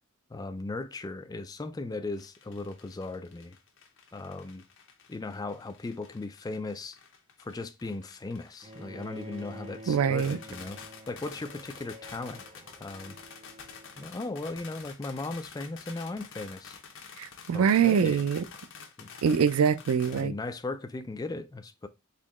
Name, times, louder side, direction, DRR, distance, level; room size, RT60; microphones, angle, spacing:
voice 1, 0.3-3.6 4.1-4.6 5.1-7.0 7.4-10.8 11.1-12.4 12.8-13.2 14.0-16.8 17.5-18.2 19.0-19.1 20.1-21.9, left 3 dB, 20° left, 0.3 m, -37 dB
sound 1, 2.1-20.2, left 6 dB, 60° left, 0.8 m, -49 dB
Bowed string instrument, 8.6-14.7, equal, 25° right, 0.6 m, -49 dB
voice 2, 9.9-10.4 17.2-18.5 19.2-20.3, right 7 dB, 80° right, 0.4 m, -24 dB
4.2 x 3.6 x 3.0 m
head